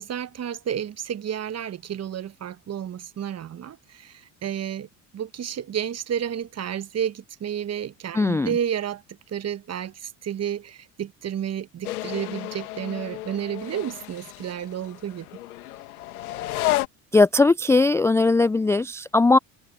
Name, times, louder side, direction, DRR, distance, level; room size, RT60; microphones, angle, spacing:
voice 1, 0.0-4.9 5.1-9.0 9.3-15.3, right 9 dB, 35° right, 1.2 m, -31 dB
voice 2, 8.1-8.5 17.1-19.4, left 3 dB, 5° left, 0.4 m, -19 dB
sound 1, 11.8-16.9, left 16 dB, 80° left, 2.2 m, -31 dB
hypercardioid pair, 65°, 43 cm